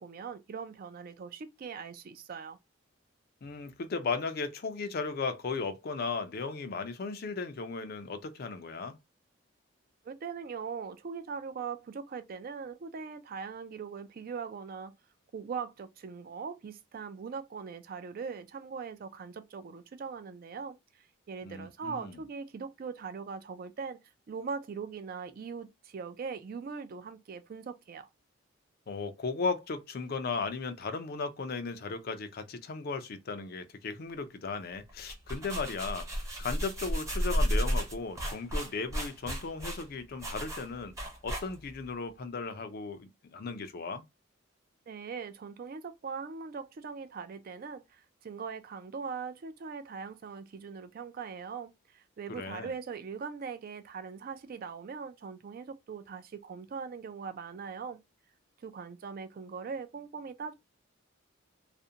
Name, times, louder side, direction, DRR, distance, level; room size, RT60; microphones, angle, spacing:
voice 1, 0.0-2.6 10.0-14.9 15.3-20.8 21.3-24.0 24.3-28.1 44.9-58.0 58.6-60.5, right 5 dB, 45° right, 0.3 m, -41 dB
voice 2, 3.4-9.0 21.4-22.2 28.9-40.9 41.2-44.0 52.3-52.7, left 4 dB, 50° left, 0.4 m, -36 dB
sound 1, 34.9-41.8, equal, 15° right, 0.7 m, -33 dB
2.5 x 2.1 x 2.7 m
head